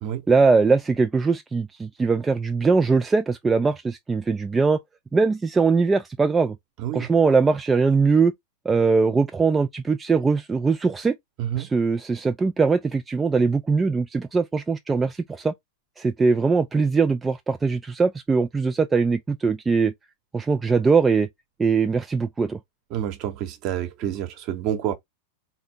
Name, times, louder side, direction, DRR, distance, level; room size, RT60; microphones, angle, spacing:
voice 1, 0.3-4.8 5.1-6.6 6.9-8.3 8.7-11.2 11.6-15.5 16.0-19.9 20.3-21.3 21.6-22.6, right 4 dB, 15° right, 0.3 m, -21 dB
voice 2, 11.4-11.7 22.9-24.9, right 11 dB, 40° right, 0.9 m, -28 dB
4.2 x 2.2 x 3.6 m
figure-of-eight pair, 90°, 0 cm